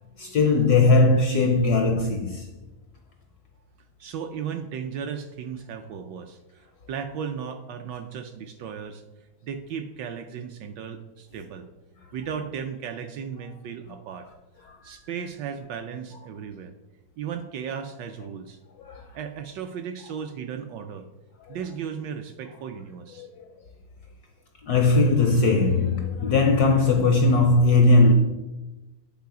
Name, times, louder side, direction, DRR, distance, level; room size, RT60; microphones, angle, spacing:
voice 1, 0.2-2.5 14.7-15.0 18.9-19.0 21.5-21.6 23.2-23.3 24.6-28.1, left 3 dB, 75° left, 0.9 m, -19 dB
voice 2, 4.0-9.0 9.4-11.7 12.1-14.3 14.8-16.7 17.2-18.6 19.1-21.1 21.5-23.3, right 7 dB, 75° right, 1.1 m, -35 dB
9.5 x 4.0 x 4.8 m
omnidirectional pair, 2.2 m